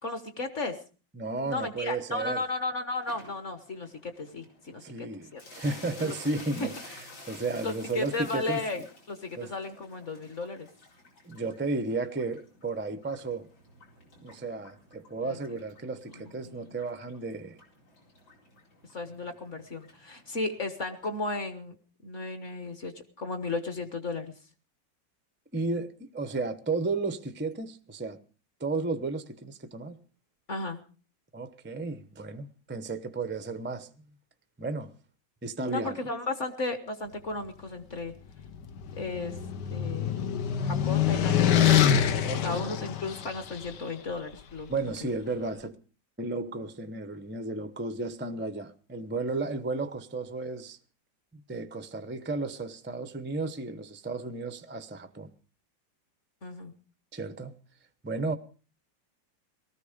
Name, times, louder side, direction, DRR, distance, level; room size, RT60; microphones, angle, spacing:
voice 1, 0.0-0.8 1.5-4.8 5.3-5.4 6.0-6.1 7.6-10.7 15.2-15.4 16.4-16.8 18.9-21.7 22.0-22.9 23.2-24.3 30.5-30.8 35.7-38.1 38.9-39.3 39.7-40.1 40.6-41.8 42.3-44.7 45.0-45.1 56.4-56.7, left 3 dB, 40° left, 1.5 m, -34 dB
voice 2, 1.1-2.4 4.8-6.7 7.3-8.6 9.4-9.5 11.2-13.5 14.2-17.6 25.5-28.2 28.6-30.0 31.3-33.9 34.6-34.9 35.4-36.0 42.2-42.7 44.7-45.8 46.2-50.8 51.3-55.3 57.1-57.6 58.0-58.3, right 3 dB, 15° right, 0.4 m, -33 dB
sound 1, 3.0-21.2, left 2 dB, 85° left, 5.2 m, -52 dB
sound 2, 38.4-43.7, left 9 dB, 65° left, 1.5 m, -25 dB
19.0 x 14.0 x 5.1 m
omnidirectional pair, 2.0 m